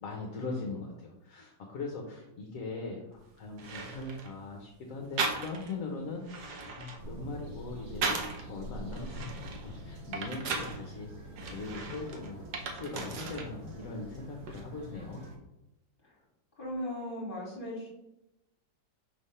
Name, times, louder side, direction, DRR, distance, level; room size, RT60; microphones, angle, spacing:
voice 1, 0.0-8.1 8.5-11.1 11.5-12.4 12.7-15.2, left 3 dB, 55° left, 0 dB, 1.0 m, -40 dB
sound 1, 3.1-3.2 3.6-4.3 5.2-5.8 6.2-8.4 8.9-10.8 11.4-13.5 13.8-14.6, right 4 dB, 60° right, 1.4 m, -37 dB
sound 2, 7.0-15.4, right 1 dB, 45° right, 1.1 m, -46 dB
voice 2, 16.6-17.9, left 1 dB, 25° left, -3 dB, 2.0 m, -37 dB
5.7 x 3.4 x 5.5 m, 0.92 s
omnidirectional pair, 2.1 m